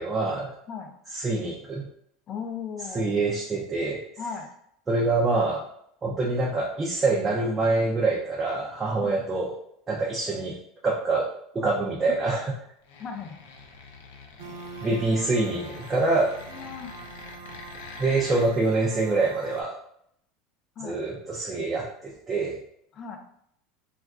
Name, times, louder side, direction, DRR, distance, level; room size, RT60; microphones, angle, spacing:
voice 1, 0.0-0.5 1.1-1.9 2.9-4.0 4.9-5.6 6.0-9.5 9.9-10.5 10.8-11.3 11.5-12.5 14.8-16.3 18.0-19.7 20.8-22.6, right 3 dB, 20° right, -4 dB, 0.5 m, -25 dB
voice 2, 2.3-3.2 4.2-4.5 9.0-9.2 13.0-13.4 16.5-16.9 20.8-21.0 22.9-23.2, left 6 dB, 35° left, 5 dB, 0.5 m, -37 dB
sound 1, 12.8-18.5, left 4 dB, 85° left, 0.5 m, -45 dB
sound 2, 14.4-19.6, right 3 dB, 75° right, 0.4 m, -44 dB
2.4 x 2.2 x 3.5 m, 0.71 s
supercardioid pair, 130°, 0 cm